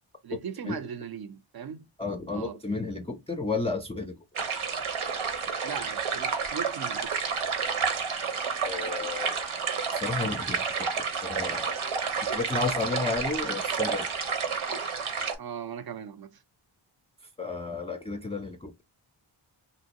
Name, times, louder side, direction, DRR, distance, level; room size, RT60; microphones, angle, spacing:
voice 1, 0.2-1.9 2.3-2.6 5.6-7.3 15.4-16.4, right 7 dB, 50° right, 0.5 m, -38 dB
voice 2, 2.0-4.2 8.6-9.4 9.9-10.6 11.1-11.8 12.2-14.1 17.4-18.8, left 3 dB, 15° left, 0.4 m, -32 dB
sound 1, 4.4-15.4, right 6 dB, 85° right, 0.9 m, -30 dB
2.9 x 2.8 x 2.8 m
wide cardioid pair, 100°, 48 cm